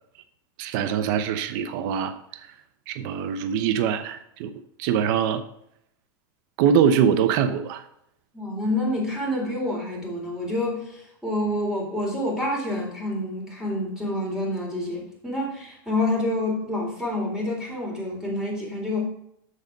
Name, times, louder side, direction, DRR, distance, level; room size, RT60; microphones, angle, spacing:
voice 1, 0.6-2.5 2.9-4.5 4.8-5.4 6.6-7.8, right 8 dB, 60° right, 10 dB, 0.8 m, -23 dB
voice 2, 8.3-19.0, left 1 dB, 5° right, -3 dB, 3.8 m, -28 dB
7.0 x 6.7 x 5.3 m, 0.75 s
supercardioid pair, 120°, 12 cm